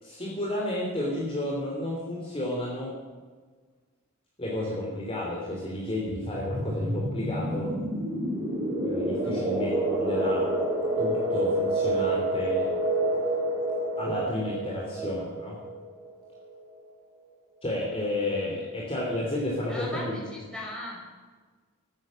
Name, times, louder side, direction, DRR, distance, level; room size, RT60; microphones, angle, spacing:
voice 1, 0.0-2.9 4.4-7.7 8.8-10.5 11.0-12.7 14.0-15.6 17.6-20.2, left 1 dB, 25° left, -3 dB, 3.1 m, -31 dB
sound 1, 6.1-16.6, right 1 dB, 15° right, 4.9 m, -28 dB
voice 2, 19.7-21.0, left 1 dB, 5° left, -3 dB, 5.6 m, -38 dB
21.0 x 9.8 x 6.4 m, 1.4 s
head